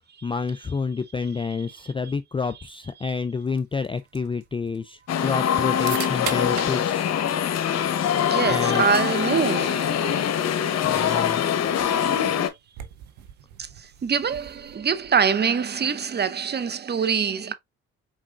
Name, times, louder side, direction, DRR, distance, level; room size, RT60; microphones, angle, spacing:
voice 1, 0.2-7.1 8.5-8.8 10.8-11.4, left 5 dB, 20° left, 0.3 m, -29 dB
sound 1, 3.5-15.4, right 11 dB, 90° right, 0.6 m, -43 dB
sound 2, 5.1-12.5, left 9 dB, 60° left, 0.8 m, -23 dB
voice 2, 8.2-10.7 11.0-11.1 13.6-17.5, right 6 dB, 35° right, 0.7 m, -25 dB
4.6 x 3.7 x 2.4 m
supercardioid pair, 50°, 30 cm